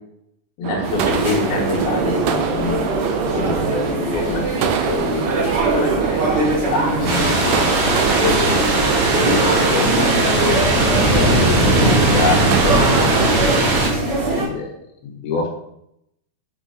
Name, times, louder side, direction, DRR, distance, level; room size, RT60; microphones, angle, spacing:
voice 1, 0.6-4.4 4.9-5.2 5.7-6.2 6.7-8.5 9.1-10.7 11.2-13.7 14.3-14.7 15.0-15.5, left 4 dB, 80° left, 0 dB, 3.5 m, -25 dB
sound 1, 0.6-13.6, right 8 dB, 80° right, 2.0 m, -25 dB
sound 2, 0.8-14.4, right 1 dB, 40° right, 3.6 m, -23 dB
sound 3, 7.1-13.9, right 2 dB, 60° right, 3.2 m, -18 dB
8.8 x 5.5 x 5.5 m, 0.78 s
omnidirectional pair, 4.3 m